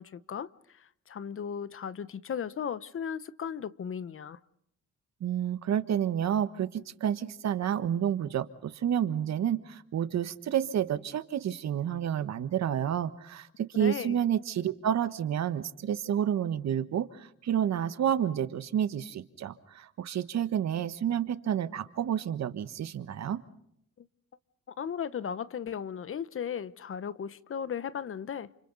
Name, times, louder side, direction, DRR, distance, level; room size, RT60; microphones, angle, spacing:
voice 1, 0.0-4.4 13.8-14.2 24.0-24.1 24.8-28.5, left 7 dB, 45° left, 0.9 m, -36 dB
voice 2, 5.2-23.4, right 9 dB, 60° right, 1.3 m, -30 dB
30.0 x 27.5 x 4.0 m
cardioid pair, 90°, 30 cm